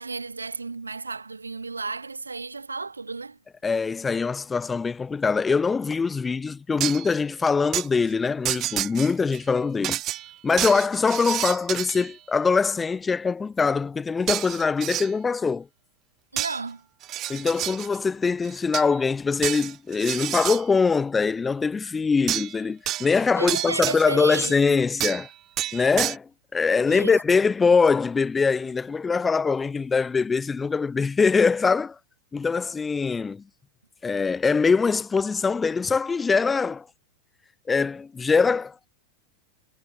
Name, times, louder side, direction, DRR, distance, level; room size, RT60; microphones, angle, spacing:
voice 1, 0.0-3.4 16.3-16.9 23.3-24.8 26.9-27.2, right 4 dB, 80° right, 7.2 m, -33 dB
voice 2, 3.6-10.0 10.4-15.7 17.3-25.3 25.7-31.9 32.3-33.4 34.0-36.9 37.7-38.9, left 5 dB, 15° left, 3.1 m, -23 dB
sound 1, 6.8-7.1 7.7-7.9 8.4-9.4 9.8-12.1 14.3-15.1 16.4-16.6 17.0-18.0 18.4-19.0 19.4-20.6 22.3-22.6 22.9-24.6 25.0-25.3 25.6-26.2, right 13 dB, 35° right, 7.9 m, -29 dB
figure-of-eight pair, 90°, 0 cm